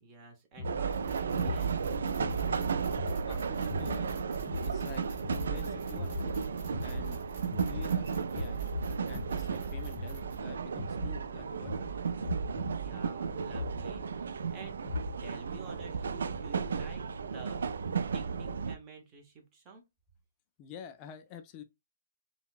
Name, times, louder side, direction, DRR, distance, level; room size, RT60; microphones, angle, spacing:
voice 1, 0.0-1.8 12.8-14.9 15.2-17.6 18.1-19.8, right 5 dB, 15° right, 0.8 m, -50 dB
sound 1, 0.6-15.3, equal, 5° left, 1.2 m, -40 dB
sound 2, 0.6-18.8, right 5 dB, 75° right, 0.3 m, -34 dB
sound 3, 0.9-10.4, right 6 dB, 40° right, 1.1 m, -44 dB
voice 2, 3.3-4.1 4.6-5.1 5.4-6.4 6.7-7.2 7.5-8.6 9.1-11.9 14.4-14.5 20.6-21.6, left 8 dB, 20° left, 0.3 m, -48 dB
3.7 x 2.2 x 2.3 m
hypercardioid pair, 170°, 0 cm